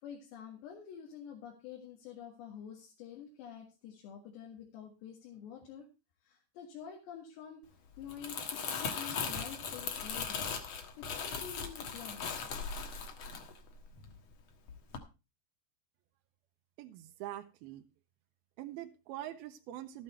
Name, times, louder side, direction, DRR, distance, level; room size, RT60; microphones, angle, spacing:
voice 1, 0.0-5.9 6.2-7.6 8.0-12.6, left 8 dB, 90° left, 0 dB, 4.1 m, -48 dB
Crumpling crinkling, 7.9-14.3 14.7-15.0, left 6 dB, 60° left, 1.8 m, -39 dB
voice 2, 16.8-17.8 18.6-20.0, right 13 dB, 80° right, 5 dB, 2.4 m, -44 dB
13.0 x 9.3 x 4.3 m, 0.29 s
omnidirectional pair, 4.8 m